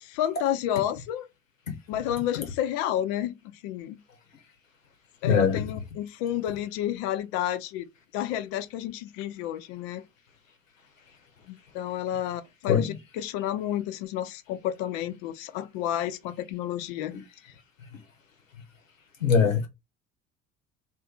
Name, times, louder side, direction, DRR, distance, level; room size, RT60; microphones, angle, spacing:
voice 1, 0.0-1.3 1.9-3.3 3.6-4.0 5.2-10.0 11.5-17.2, left 11 dB, 60° left, 0.5 m, -30 dB
voice 2, 5.2-5.6 12.7-12.9 19.2-19.7, left 6 dB, 85° left, 0.8 m, -21 dB
2.5 x 2.5 x 3.6 m
figure-of-eight pair, 55°, 38 cm